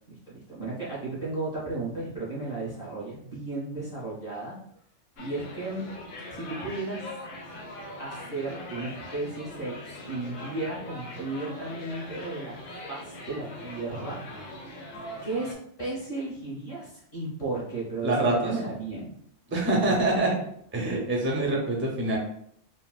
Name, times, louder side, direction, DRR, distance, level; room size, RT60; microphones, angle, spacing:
voice 1, 0.1-4.6 5.2-5.8 6.3-7.1 8.0-12.6 12.9-14.7 15.2-19.1, right 2 dB, 30° left, -8 dB, 1.3 m, -34 dB
sound 1, 5.2-15.5, left 1 dB, 85° left, 1.1 m, -41 dB
voice 2, 18.0-18.5 19.5-20.4 20.7-22.2, right 2 dB, 15° right, -1 dB, 0.5 m, -25 dB
4.0 x 2.1 x 2.3 m, 0.67 s
omnidirectional pair, 1.2 m